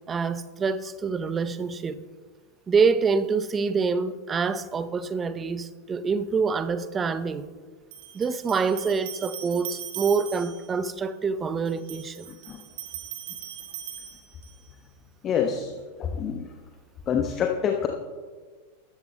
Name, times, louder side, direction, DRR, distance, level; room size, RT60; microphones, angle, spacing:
voice 1, 0.1-2.0 2.7-7.4 8.1-12.3, right 5 dB, 20° right, 0.6 m, -26 dB
sound 1, 7.9-10.7 11.7-14.7, right 11 dB, 50° right, 1.6 m, -40 dB
voice 2, 15.2-15.7 16.0-16.4 17.1-17.9, left 7 dB, 30° left, 0.9 m, -26 dB
20.0 x 14.0 x 2.2 m
figure-of-eight pair, 90°, 0 cm